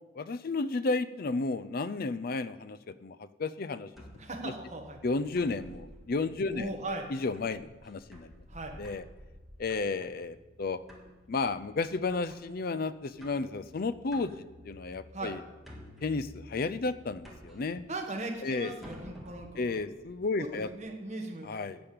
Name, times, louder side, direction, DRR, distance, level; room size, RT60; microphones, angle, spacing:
voice 1, 0.1-3.9 4.4-4.5 5.0-6.7 7.1-8.3 8.8-9.0 9.6-10.8 11.3-14.3 14.6-15.4 16.0-17.8 18.4-18.7 19.6-20.7 21.4-21.8, left 3 dB, 45° left, 14 dB, 0.4 m, -32 dB
sound 1, 3.9-20.8, left 1 dB, ahead, 1.6 m, -53 dB
voice 2, 4.2-5.0 6.5-7.1 8.5-8.8 15.1-15.4 17.9-19.7 20.4-21.7, right 2 dB, 35° right, 1 dB, 1.5 m, -38 dB
13.0 x 5.2 x 8.7 m, 1.2 s
head